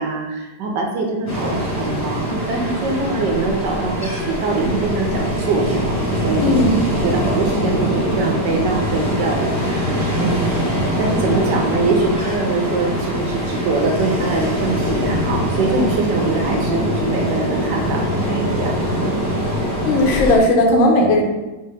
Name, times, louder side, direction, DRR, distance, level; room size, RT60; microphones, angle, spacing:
voice 1, 0.0-6.0 6.2-6.6 7.0-10.6 11.0-19.2, right 3 dB, 70° right, 0 dB, 1.2 m, -23 dB
Ocean, 1.3-20.4, equal, 15° left, 0.5 m, -22 dB
voice 2, 6.4-6.8 19.9-21.2, left 1 dB, 90° left, 1 dB, 1.5 m, -15 dB
3.7 x 3.3 x 3.3 m, 1.1 s
omnidirectional pair, 2.1 m